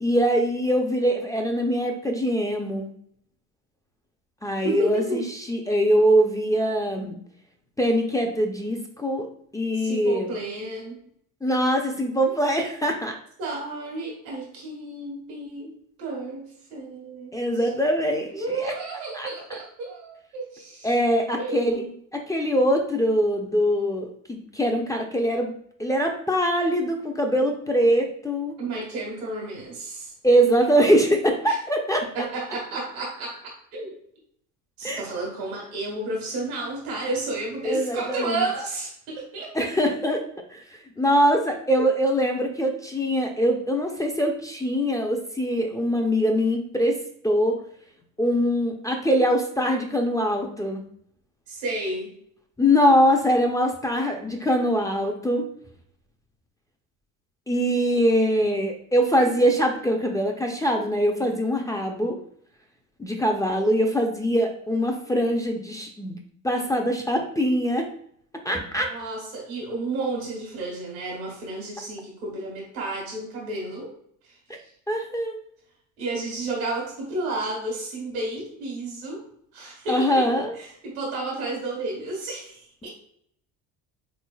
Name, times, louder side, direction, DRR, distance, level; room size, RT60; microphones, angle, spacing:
voice 1, 0.0-2.9 4.4-5.2 5.5-7.1 7.8-9.3 9.5-10.3 11.4-13.1 17.3-18.7 19.1-19.3 20.8-21.9 22.3-28.5 30.2-32.0 34.8-35.0 37.6-38.4 39.5-40.2 40.5-47.0 47.2-47.6 48.2-50.8 52.6-55.5 57.5-62.2 63.0-66.2 66.4-67.9 68.4-68.9 74.9-75.4 79.9-80.5, equal, 10° left, 1 dB, 0.4 m, -23 dB
voice 2, 4.6-5.3 9.7-11.0 13.4-15.7 16.0-17.7 18.3-20.9 21.4-21.8 28.6-30.1 31.4-31.6 32.0-33.9 34.8-39.5 41.8-41.9 51.5-52.1 68.8-73.9 74.2-74.3 76.0-79.3 79.5-82.9, right 2 dB, 80° right, -2 dB, 1.5 m, -32 dB
3.6 x 3.2 x 2.2 m, 0.66 s
supercardioid pair, 80°, 40 cm